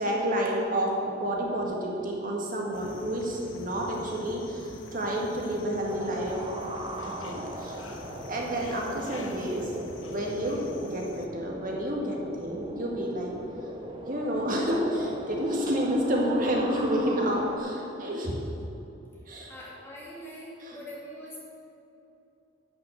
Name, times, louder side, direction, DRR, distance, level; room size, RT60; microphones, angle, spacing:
voice 1, 0.0-6.4 7.2-7.8 8.3-9.7 10.1-13.3 14.1-18.4 19.3-19.5 20.6-20.8, equal, 45° right, -1 dB, 1.9 m, -29 dB
sound 1, 2.7-11.3, left 2 dB, 75° left, 0.9 m, -45 dB
sound 2, 5.8-17.6, right 1 dB, 25° right, 0.8 m, -40 dB
voice 2, 19.5-21.4, equal, 10° left, -6 dB, 2.4 m, -43 dB
11.0 x 5.9 x 7.7 m, 2.9 s
head